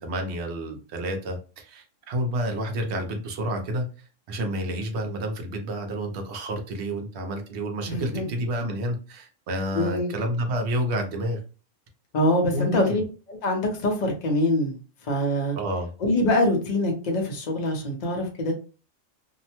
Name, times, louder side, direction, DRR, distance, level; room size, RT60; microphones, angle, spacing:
voice 1, 0.0-3.9 4.3-11.4 12.5-12.8 15.5-15.9, equal, 60° right, 4 dB, 0.9 m, -29 dB
voice 2, 7.8-8.3 9.7-10.1 12.1-13.0 13.3-15.6 16.0-18.5, left 1 dB, 40° left, 1 dB, 0.7 m, -24 dB
2.7 x 2.1 x 2.8 m, 0.35 s
omnidirectional pair, 1.4 m